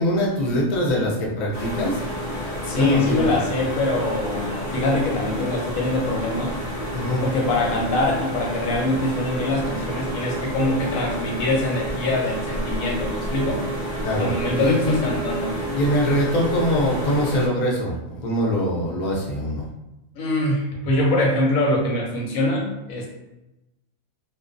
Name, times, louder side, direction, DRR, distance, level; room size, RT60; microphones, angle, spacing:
voice 1, 0.0-2.1 2.7-3.3 6.9-7.2 14.0-15.1 15.7-19.7, equal, 60° left, -2 dB, 0.4 m, -23 dB
sound 1, 1.5-17.5, right 1 dB, 40° right, 0.5 m, -30 dB
voice 2, 2.6-6.5 7.2-13.6 14.2-15.6 20.2-23.1, left 2 dB, 90° left, 0 dB, 1.0 m, -23 dB
2.3 x 2.2 x 2.4 m, 0.95 s
omnidirectional pair, 1.4 m